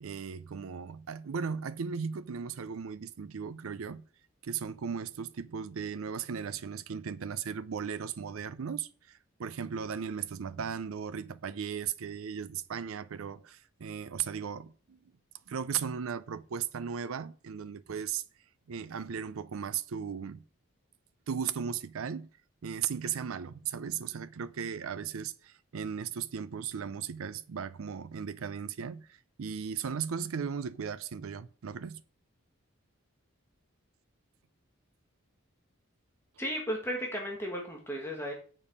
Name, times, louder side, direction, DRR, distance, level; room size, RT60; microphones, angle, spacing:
voice 1, 0.0-4.0 4.4-15.0 15.5-18.2 18.7-20.4 21.3-22.3 22.6-32.0, right 7 dB, 75° right, 0.5 m, -36 dB
voice 2, 36.4-38.3, equal, 10° left, 1.7 m, -34 dB
7.2 x 7.0 x 5.5 m
head